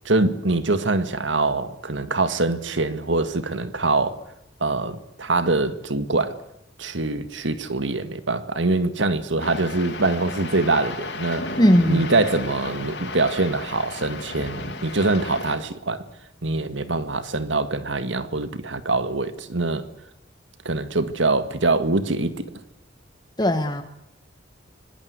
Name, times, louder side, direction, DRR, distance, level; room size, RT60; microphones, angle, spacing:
voice 1, 0.1-4.2 4.6-6.4 6.8-11.6 11.9-16.0 16.4-19.8 20.7-22.4, right 2 dB, 75° right, 1.9 m, -24 dB
sound 1, 9.4-15.6, left 2 dB, 65° left, 4.9 m, -34 dB
voice 2, 11.6-12.1 23.4-23.8, equal, 20° left, 1.4 m, -18 dB
25.5 x 19.0 x 8.1 m
head